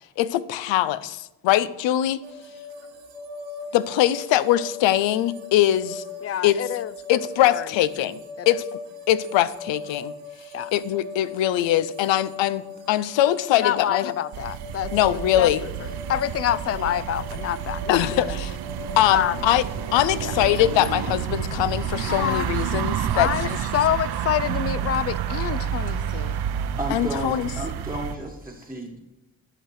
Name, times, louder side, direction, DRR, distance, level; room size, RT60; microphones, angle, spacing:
voice 1, 0.2-2.2 3.7-6.0 6.4-6.6 7.1-8.2 8.5-8.6 9.1-10.1 10.7-14.1 14.9-15.6 17.9-18.6 19.0-19.6 19.9-23.6 26.9-27.5, left 13 dB, 75° left, 0.6 m, -22 dB
sound 1, 2.2-20.8, left 3 dB, 85° right, 1.4 m, -39 dB
voice 2, 6.2-7.7 8.4-8.6 10.5-10.7 13.5-14.9 15.4-15.5 16.1-18.4 19.1-19.4 20.2-20.3 22.1-22.5 23.1-26.4, left 10 dB, 35° left, 0.4 m, -27 dB
sound 2, 14.3-28.2, right 9 dB, 60° right, 0.7 m, -29 dB
voice 3, 26.8-29.0, right 1 dB, 5° right, 1.3 m, -32 dB
11.0 x 5.8 x 4.7 m
cardioid pair, 80°, 44 cm